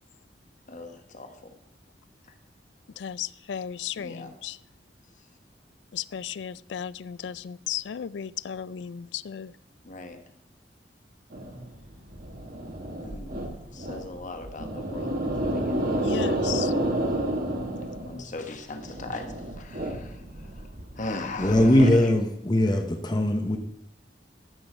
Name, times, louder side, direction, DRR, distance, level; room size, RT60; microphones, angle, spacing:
voice 1, 0.7-1.5 4.0-4.3 9.8-10.2 13.0-13.4 13.7-16.3 17.8-20.6 21.0-21.9, left 3 dB, 45° left, 1.2 m, -39 dB
voice 2, 3.0-4.6 5.9-9.5 16.0-16.7, left 9 dB, 75° left, 0.4 m, -35 dB
sound 1, 11.3-21.9, right 1 dB, 55° right, 1.6 m, -31 dB
voice 3, 21.4-23.6, left 1 dB, 25° left, 0.9 m, -21 dB
14.0 x 6.2 x 4.5 m
head